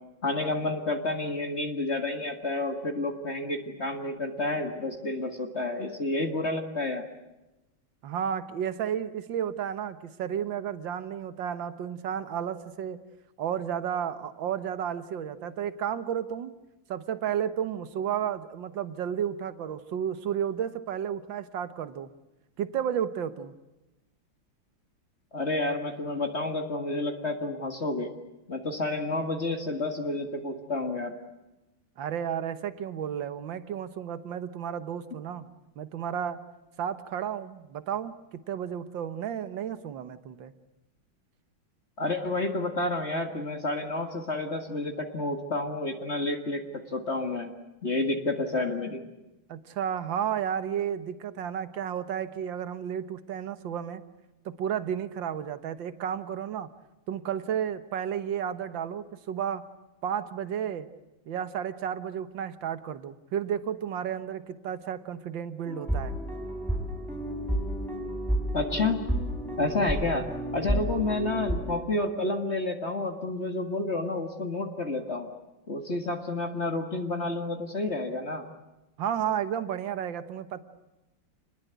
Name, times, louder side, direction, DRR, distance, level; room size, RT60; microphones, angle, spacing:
voice 1, 0.2-7.1 25.3-28.1 28.5-31.1 42.0-47.5 47.8-49.0 68.5-69.0 69.6-70.3 70.5-75.3 75.7-78.5, left 2 dB, 35° left, 4 dB, 2.1 m, -30 dB
voice 2, 8.0-13.0 13.4-16.5 16.9-22.1 22.6-23.5 32.0-35.5 35.8-36.4 36.8-40.5 49.5-54.0 54.5-56.7 57.1-59.6 60.0-60.9 61.3-66.2 79.0-80.6, right 9 dB, 75° right, 12 dB, 1.9 m, -32 dB
sound 1, 65.7-71.8, equal, ahead, 4.0 m, -31 dB
28.0 x 21.0 x 8.3 m, 1.0 s
omnidirectional pair, 2.1 m